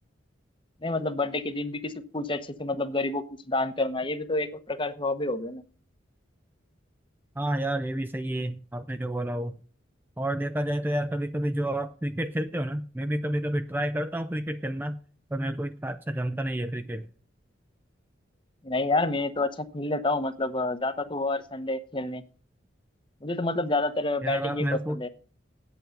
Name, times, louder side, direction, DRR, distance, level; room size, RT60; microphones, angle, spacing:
voice 1, 0.8-5.6 18.6-22.2 23.2-25.1, left 2 dB, 25° left, 0.9 m, -29 dB
voice 2, 7.4-9.6 10.2-15.0 15.3-17.1 24.2-25.0, right 1 dB, 10° right, 0.4 m, -30 dB
8.8 x 8.1 x 7.6 m
head